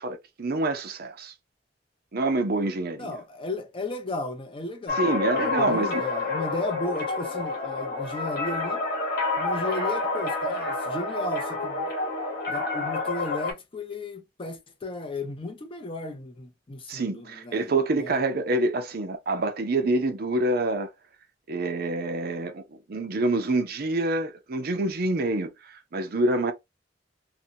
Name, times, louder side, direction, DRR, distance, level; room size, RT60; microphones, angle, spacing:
voice 1, 0.0-1.3 2.1-3.1 5.0-6.0 16.9-20.9 21.5-22.6 22.9-26.5, right 2 dB, 55° right, 0.6 m, -26 dB
voice 2, 3.0-8.8 9.4-11.9 12.5-17.7 18.0-18.2, left 2 dB, 30° left, 0.5 m, -35 dB
sound 1, 4.9-13.5, left 3 dB, 60° left, 1.1 m, -28 dB
2.5 x 2.2 x 2.7 m
head